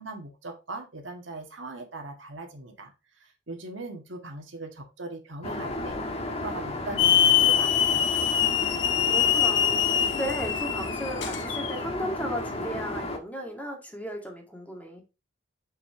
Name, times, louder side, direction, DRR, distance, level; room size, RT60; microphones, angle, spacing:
voice 1, 0.0-6.0 6.3-8.1, right 2 dB, 70° right, 1.7 m, -40 dB
Aircraft, 5.4-13.2, left 2 dB, 30° left, 1.5 m, -33 dB
Hiss / Alarm, 7.0-11.8, left 10 dB, 65° left, 1.0 m, -24 dB
voice 2, 9.1-15.0, equal, 10° left, 1.8 m, -35 dB
6.9 x 5.9 x 2.7 m
head